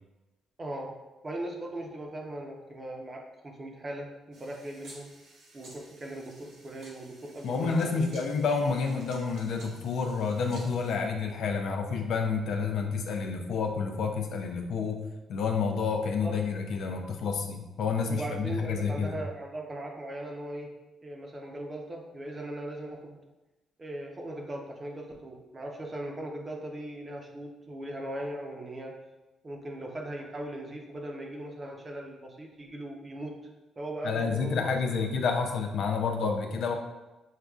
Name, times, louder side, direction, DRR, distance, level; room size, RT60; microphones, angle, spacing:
voice 1, 0.6-0.9 1.2-5.1 5.5-8.2 16.2-16.3 18.1-20.7 21.0-23.2 23.8-29.0 29.4-33.3 33.8-35.1, right 1 dB, 30° right, 0 dB, 0.8 m, -39 dB
sound 1, 4.3-10.9, right 1 dB, 80° right, 1.1 m, -53 dB
voice 2, 7.4-15.0 15.3-19.2 34.0-36.7, left 5 dB, 70° left, 3 dB, 0.5 m, -29 dB
6.4 x 2.5 x 2.4 m, 1.1 s
cardioid pair, 90°, 0 cm